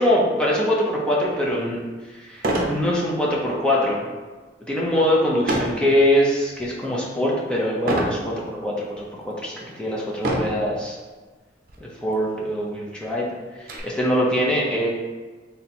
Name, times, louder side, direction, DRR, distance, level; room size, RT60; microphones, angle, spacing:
voice 1, 0.0-1.8 2.1-4.0 4.7-11.0 11.8-13.3 13.8-14.9, equal, 5° left, -5 dB, 0.6 m, -23 dB
sound 1, 1.4-1.5 2.4-2.8 3.3-3.6 5.5-5.8 6.5-6.9 7.9-8.2 9.0-9.1 10.2-10.7 11.7-11.8 12.1-12.2 12.7-13.8, right 1 dB, 55° right, 0.7 m, -25 dB
3.3 x 2.9 x 4.2 m, 1.3 s
head